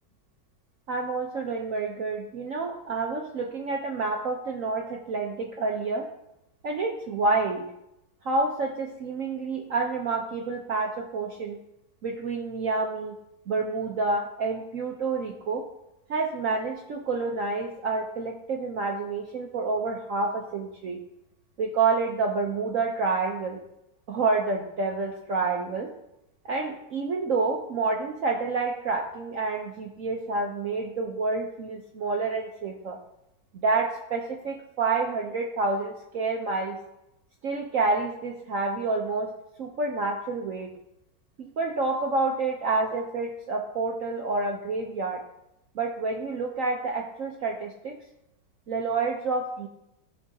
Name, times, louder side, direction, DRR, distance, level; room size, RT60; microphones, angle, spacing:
voice 1, 0.9-6.1 6.6-7.7 8.2-11.6 12.0-13.2 13.5-15.6 16.1-21.0 21.6-23.6 24.1-25.9 26.4-33.0 33.5-36.8 37.4-39.3 39.6-40.7 41.4-45.2 45.7-48.0 48.7-49.7, right 3 dB, 55° right, 1 dB, 1.0 m, -28 dB
15.5 x 5.7 x 2.8 m, 0.85 s
omnidirectional pair, 2.0 m